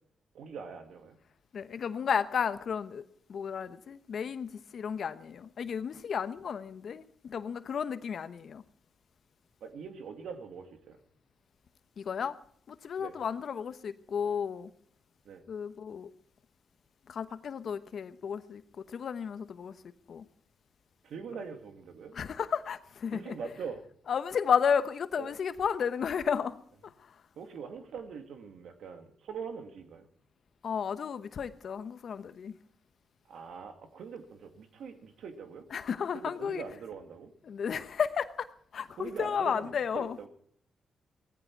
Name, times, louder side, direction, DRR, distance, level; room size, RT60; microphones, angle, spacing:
voice 1, 0.3-1.2 9.6-11.0 13.0-13.1 15.2-15.4 21.0-22.2 23.1-23.8 25.2-25.3 27.4-30.1 33.3-35.7 36.1-37.3 39.0-40.3, right 5 dB, 80° right, 2.2 m, -43 dB
voice 2, 1.5-3.0 3.3-8.6 12.0-12.4 12.7-14.7 15.5-16.1 17.1-18.6 18.9-19.7 20.1-20.2 22.1-23.4 24.1-26.6 30.6-32.5 35.7-36.6 37.4-38.5 38.7-40.2, left 7 dB, 65° left, 1.0 m, -33 dB
17.5 x 15.0 x 4.7 m
supercardioid pair, 55°, 0 cm